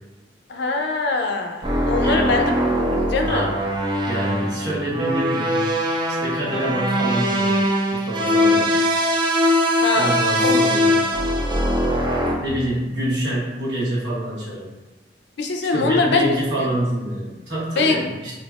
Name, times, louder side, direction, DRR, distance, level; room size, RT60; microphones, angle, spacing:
voice 1, 0.5-2.6 2.9-3.5 8.6-8.7 9.8-10.7 15.4-16.3 16.6-16.7 17.8-18.1, left 3 dB, 70° left, 3 dB, 0.5 m, -23 dB
sound 1, 1.6-12.4, equal, 25° right, 0.5 m, -21 dB
voice 2, 2.0-2.4 3.2-3.6 4.0-5.6 6.2-7.6 7.9-8.8 9.9-11.1 12.4-14.7 15.7-18.3, right 1 dB, 70° right, -7 dB, 1.3 m, -26 dB
5.1 x 2.7 x 2.4 m, 1.1 s
head